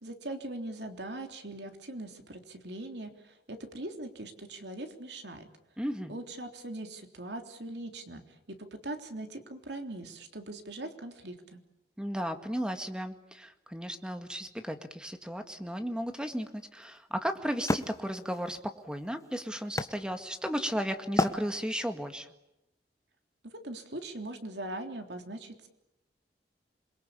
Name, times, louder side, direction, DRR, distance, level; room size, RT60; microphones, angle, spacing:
voice 1, 0.0-5.5 6.1-8.2 8.5-8.6 8.8-11.6 23.5-25.7, right 1 dB, 70° right, 5 dB, 3.4 m, -41 dB
voice 2, 5.8-6.1 12.0-22.3, equal, 5° right, 7 dB, 1.9 m, -35 dB
Wood, 15.9-20.6 21.1-22.0, left 1 dB, 20° left, 1.3 m, -34 dB
27.5 x 22.5 x 8.7 m, 0.89 s
head